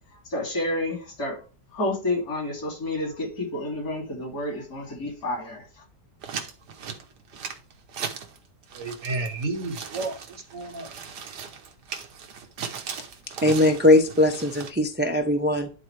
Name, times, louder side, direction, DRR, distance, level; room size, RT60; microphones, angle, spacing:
voice 1, 0.2-1.4 1.7-5.6, left 2 dB, 60° left, 0 dB, 3.3 m, -29 dB
sound 1, 6.2-8.4 8.6-14.7, right 6 dB, 80° right, 1.6 m, -38 dB
voice 2, 8.7-10.9, right 2 dB, 60° right, 8 dB, 1.2 m, -32 dB
voice 3, 13.4-15.7, left 1 dB, 15° right, 3 dB, 0.4 m, -20 dB
11.0 x 4.1 x 3.2 m, 0.33 s
omnidirectional pair, 1.8 m